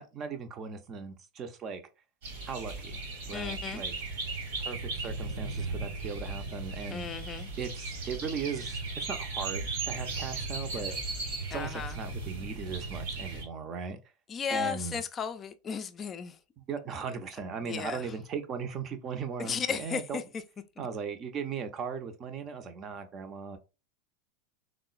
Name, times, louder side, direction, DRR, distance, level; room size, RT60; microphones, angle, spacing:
voice 1, 0.0-1.8 2.4-3.0 3.3-3.9 4.6-7.1 7.6-10.9 11.5-14.0 14.5-15.0 16.6-20.2 20.8-23.6, right 6 dB, 35° right, 0.5 m, -38 dB
sound 1, 2.2-13.4, right 3 dB, 70° right, 1.0 m, -36 dB
voice 2, 3.3-3.8 6.9-7.5 11.5-12.0 13.3-13.4 14.3-16.4 17.6-18.1 19.4-20.2, left 6 dB, 30° left, 0.3 m, -35 dB
3.6 x 2.0 x 2.3 m
hypercardioid pair, 90°, 0 cm